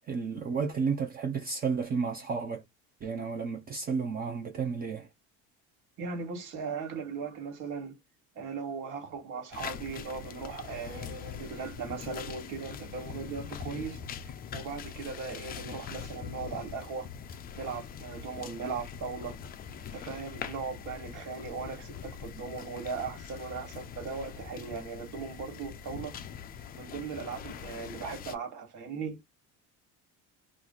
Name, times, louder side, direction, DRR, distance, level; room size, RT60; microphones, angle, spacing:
voice 1, 0.1-2.6 3.0-5.1, right 5 dB, 25° right, 0.5 m, -32 dB
voice 2, 6.0-8.0 8.4-17.1 17.5-19.4 19.9-26.2 26.7-29.2, right 5 dB, 65° right, 1.8 m, -38 dB
sound 1, 9.5-28.4, left 7 dB, 30° left, 0.3 m, -43 dB
3.0 x 2.5 x 3.8 m
cardioid pair, 155°, 34 cm